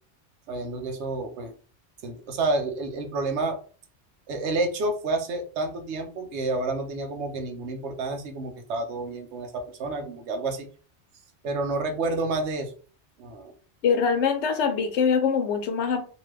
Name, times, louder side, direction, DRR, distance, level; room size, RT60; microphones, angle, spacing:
voice 1, 0.5-1.5 2.0-3.6 4.3-10.7 11.4-12.7 13.2-13.5, right 2 dB, 85° right, 6 dB, 1.0 m, -29 dB
voice 2, 13.8-16.1, left 6 dB, 85° left, 7 dB, 1.0 m, -23 dB
2.9 x 2.3 x 3.2 m, 0.39 s
omnidirectional pair, 1.1 m